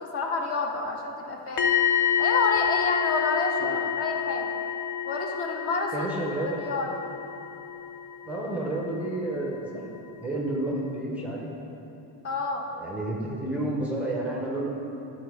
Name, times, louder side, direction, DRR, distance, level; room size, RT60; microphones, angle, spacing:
voice 1, 0.0-1.7 2.2-4.5 5.1-6.1 6.6-6.9 12.2-12.6, left 3 dB, 40° left, 2 dB, 0.7 m, -29 dB
sound 1, 1.6-9.5 9.7-10.0, left 9 dB, 80° left, 0.9 m, -29 dB
voice 2, 5.9-6.6 8.2-9.8 10.2-11.5 12.8-14.7, right 1 dB, 5° right, -3 dB, 0.5 m, -30 dB
11.0 x 4.3 x 4.6 m, 2.9 s
cardioid pair, 170°, 37 cm